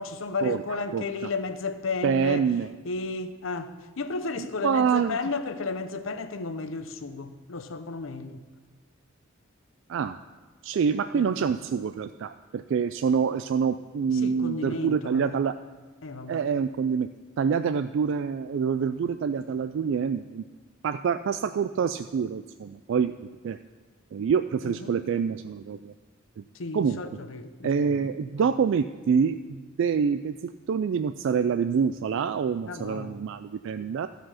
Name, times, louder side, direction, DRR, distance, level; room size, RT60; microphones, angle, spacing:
voice 1, 0.0-2.5 2.8-8.4 11.1-11.3 14.1-15.4 16.0-16.4 24.6-25.0 26.5-28.5 32.7-33.2, left 3 dB, 70° left, 0.7 m, -33 dB
voice 2, 2.0-2.7 4.4-5.2 9.9-10.2 10.6-15.6 16.3-17.1 17.4-20.4 20.8-23.1 23.4-23.6 24.1-25.9 26.4-26.5 26.7-27.0 27.6-34.1, right 6 dB, 65° right, 0.3 m, -26 dB
15.0 x 5.2 x 5.6 m
head